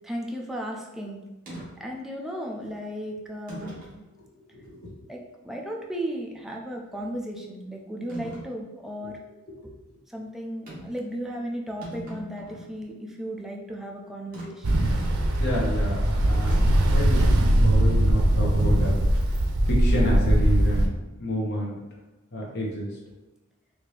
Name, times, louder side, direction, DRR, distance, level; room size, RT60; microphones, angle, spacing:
voice 1, 0.0-1.2 1.8-3.7 5.1-9.2 9.6-9.7 10.1-14.9, equal, ahead, -1 dB, 0.5 m, -35 dB
sound 1, 1.5-1.7 2.6-2.7 3.5-4.0 4.6-4.7 8.1-8.5 10.7-11.0 11.3-11.4 11.7-12.7 14.3-14.5 16.5-16.9, right 1 dB, 40° right, 1.5 m, -40 dB
voice 2, 4.5-4.9 9.6-9.7 15.4-17.3 17.6-19.0 19.6-20.9 21.2-21.8 22.3-22.9, equal, 50° left, -3 dB, 1.1 m, -29 dB
Ocean, 14.6-20.9, right 1 dB, 90° right, 0.6 m, -21 dB
4.1 x 2.7 x 3.2 m, 1.1 s
head